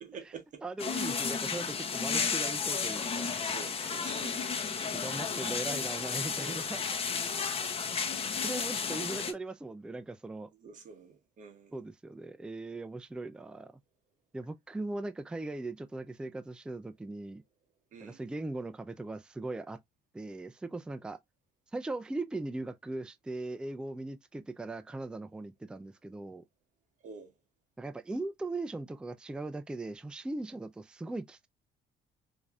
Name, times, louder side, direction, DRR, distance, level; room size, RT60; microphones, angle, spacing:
voice 1, 0.0-0.6 0.9-1.1 2.0-2.1 3.4-4.4 6.4-7.0 8.3-8.5 10.6-11.7 17.9-18.2 27.0-27.3, right 5 dB, 50° right, 1.0 m, -48 dB
voice 2, 0.6-3.4 4.8-6.9 8.4-10.5 11.7-13.7 14.3-17.4 18.0-19.8 20.1-21.2 21.7-26.4 27.8-31.5, right 2 dB, 5° right, 0.3 m, -39 dB
sound 1, 0.8-9.3, left 5 dB, 35° left, 0.9 m, -33 dB
5.1 x 2.7 x 2.3 m
cardioid pair, 110°, 17 cm